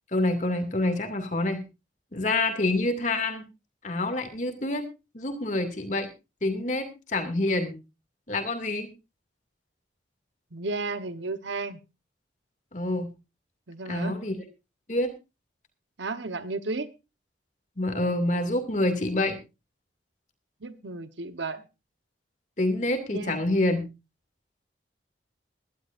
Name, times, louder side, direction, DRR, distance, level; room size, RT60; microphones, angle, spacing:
voice 1, 0.1-1.6 2.1-3.4 3.8-4.8 5.1-6.1 6.4-7.7 8.3-8.9 12.7-13.1 13.9-14.3 14.9-15.1 17.8-19.4 22.6-23.8, left 2 dB, 40° left, 2.4 m, -27 dB
voice 2, 10.5-11.8 13.7-14.2 16.0-16.9 20.6-21.6 23.1-23.4, right 3 dB, 75° right, 1.1 m, -33 dB
22.0 x 12.0 x 2.6 m
head